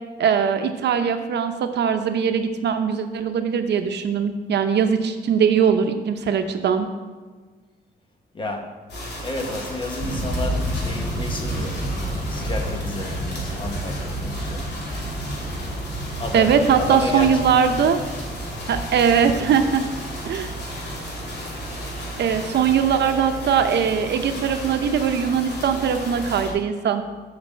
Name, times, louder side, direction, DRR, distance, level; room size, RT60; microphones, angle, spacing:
voice 1, 0.2-6.9 16.3-18.0 18.7-19.8 20.2-20.5 22.2-27.0, right 7 dB, 75° right, 7 dB, 0.7 m, -21 dB
voice 2, 8.3-8.7 9.2-11.8 12.3-14.6 16.2-17.3, left 2 dB, 30° left, 3 dB, 1.1 m, -31 dB
sound 1, 8.9-26.5, equal, 75° left, 2.4 m, -34 dB
sound 2, 10.0-26.2, right 1 dB, 15° right, 3.1 m, -32 dB
7.3 x 5.3 x 7.3 m, 1.4 s
wide cardioid pair, 180°, 18 cm